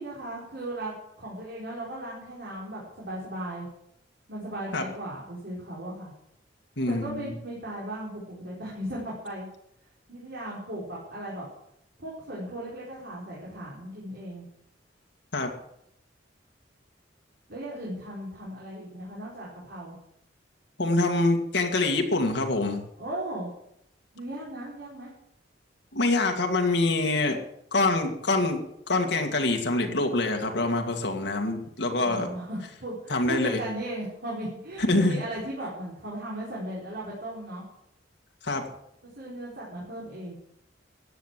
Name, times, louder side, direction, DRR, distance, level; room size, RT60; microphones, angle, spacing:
voice 1, 0.0-3.7 4.3-6.1 6.9-9.5 10.1-11.5 12.0-14.4 17.5-20.0 23.0-23.5 24.1-25.1 32.0-37.6 39.2-40.3, right 1 dB, 60° right, -6 dB, 4.7 m, -37 dB
voice 2, 6.8-7.3 15.3-15.5 20.8-22.8 25.9-27.4 27.7-28.6 28.9-32.3 33.1-33.6 34.9-35.2 38.4-38.6, left 2 dB, 65° left, 3 dB, 2.1 m, -25 dB
14.5 x 9.3 x 7.6 m, 0.76 s
head